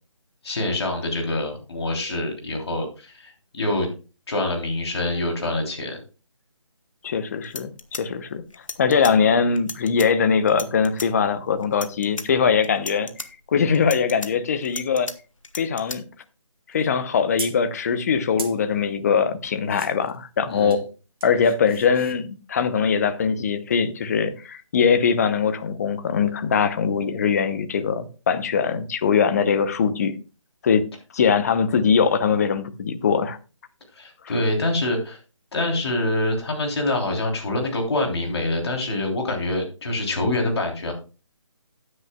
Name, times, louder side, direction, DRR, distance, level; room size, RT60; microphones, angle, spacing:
voice 1, 0.4-3.9 4.3-6.0 20.5-20.8 33.9-35.2 35.5-40.9, left 2 dB, 55° left, 3.2 m, -25 dB
voice 2, 7.0-8.4 8.8-15.1 15.5-16.0 16.7-20.8 21.2-30.1 30.6-30.8 31.1-33.4 34.2-34.3, left 6 dB, 30° left, 0.8 m, -21 dB
sound 1, 7.1-7.2 7.4-9.1 9.6-10.1 10.5-11.1 11.6-12.3 12.6-13.3 13.7-15.1 15.4-16.0, left 3 dB, 80° left, 1.3 m, -34 dB
sound 2, 16.7-17.7 18.4-18.6 19.7-20.2 20.5-20.8 21.2-22.2 23.4-23.5, right 5 dB, 45° right, 1.5 m, -38 dB
13.0 x 9.7 x 2.3 m
figure-of-eight pair, 155°, 17 cm